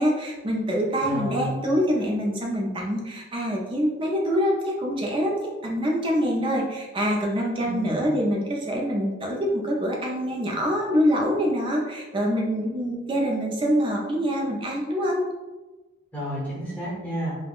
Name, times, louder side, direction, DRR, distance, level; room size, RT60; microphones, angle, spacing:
voice 1, 0.0-15.2, equal, 25° right, -1 dB, 0.4 m, -25 dB
voice 2, 1.0-1.6 7.6-8.0 16.1-17.4, right 1 dB, 10° left, -7 dB, 0.9 m, -31 dB
3.4 x 2.1 x 2.3 m, 1.2 s
head